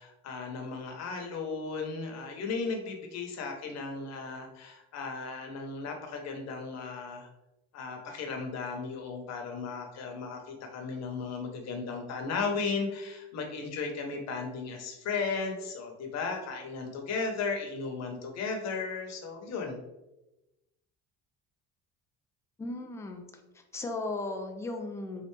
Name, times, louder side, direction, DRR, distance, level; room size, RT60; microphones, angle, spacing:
voice 1, 0.0-7.3 7.7-19.8, left 4 dB, 55° left, 2 dB, 0.9 m, -35 dB
voice 2, 22.6-23.2 23.7-25.3, left 2 dB, 10° left, 3 dB, 0.4 m, -36 dB
3.9 x 3.3 x 3.2 m, 0.97 s
cardioid pair, 145°, 32 cm